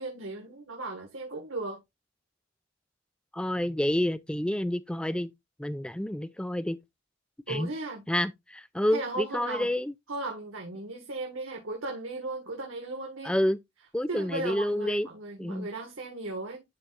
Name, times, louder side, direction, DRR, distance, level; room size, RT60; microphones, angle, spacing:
voice 1, 0.0-1.8 7.5-8.0 8.9-9.7 10.1-13.3 14.1-16.6, right 2 dB, 90° right, 1.7 m, -36 dB
voice 2, 3.3-5.3 5.6-6.8 7.5-7.7 8.1-9.9 13.2-13.6 13.9-15.1 15.4-15.7, left 1 dB, 5° left, 0.3 m, -29 dB
11.5 x 4.3 x 2.5 m
head